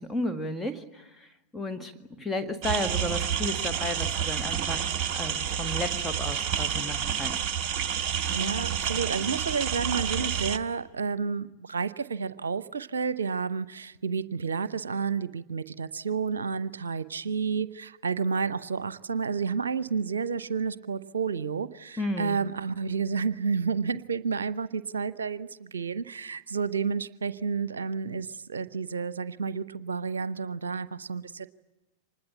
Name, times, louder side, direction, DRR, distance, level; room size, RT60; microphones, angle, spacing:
voice 1, 0.0-7.3 22.0-22.4, left 1 dB, 10° left, 7 dB, 1.8 m, -33 dB
sound 1, 2.6-10.6, right 8 dB, 40° right, 1.0 m, -29 dB
voice 2, 8.3-31.5, right 5 dB, 70° right, 17 dB, 0.7 m, -30 dB
25.5 x 20.5 x 8.4 m, 1.0 s
figure-of-eight pair, 90°, 0 cm